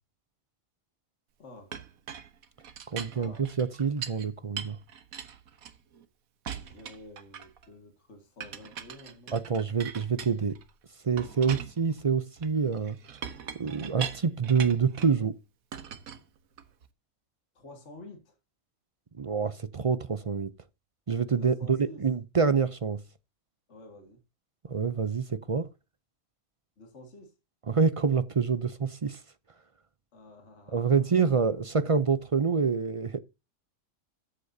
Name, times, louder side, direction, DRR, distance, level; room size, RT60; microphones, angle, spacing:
voice 1, 1.4-1.8 3.1-3.5 6.5-9.5 11.4-11.7 17.5-18.4 21.4-22.1 23.7-24.2 26.8-27.3 30.1-31.1 31.4-31.6, left 1 dB, 55° left, 2.2 m, -50 dB
Chink clink, 1.7-4.3 4.6-6.1 6.5-7.7 8.4-10.7 11.2-15.2 15.7-16.9, right 8 dB, 85° right, 1.5 m, -41 dB
voice 2, 2.9-4.8 9.3-10.6 11.0-13.0 13.5-15.3 19.2-20.5 21.1-23.0 24.7-25.7 27.7-29.2 30.7-33.2, right 5 dB, 40° right, 0.4 m, -27 dB
13.5 x 8.3 x 2.7 m
omnidirectional pair, 1.4 m